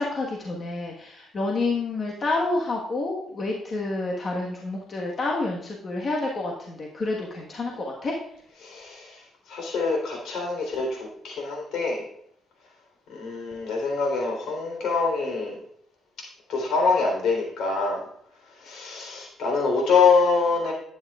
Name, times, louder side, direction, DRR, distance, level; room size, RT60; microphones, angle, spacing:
voice 1, 0.0-8.2, left 2 dB, 45° left, -1 dB, 1.4 m, -29 dB
voice 2, 8.6-12.0 13.1-15.6 16.5-18.0 18.6-20.7, left 4 dB, 75° left, 0 dB, 3.6 m, -25 dB
12.0 x 9.3 x 2.4 m, 0.70 s
cardioid pair, 90°, 0 cm